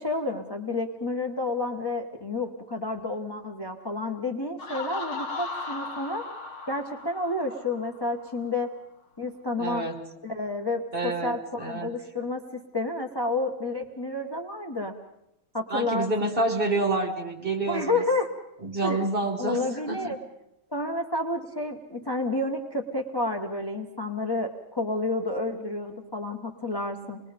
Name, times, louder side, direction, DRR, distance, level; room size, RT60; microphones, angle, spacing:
voice 1, 0.0-6.2 6.7-8.7 9.2-9.8 10.2-14.9 15.5-16.3 17.7-18.3 18.8-19.0 19.4-20.2 20.7-27.2, left 2 dB, 20° left, 1 dB, 0.8 m, -30 dB
Laughter, 4.6-8.3, left 3 dB, 80° left, 2.6 m, -37 dB
voice 2, 9.6-10.0 10.9-11.9 15.7-18.0 18.6-20.0, right 2 dB, 25° right, 3 dB, 2.1 m, -28 dB
27.0 x 21.0 x 5.2 m, 0.82 s
omnidirectional pair, 2.3 m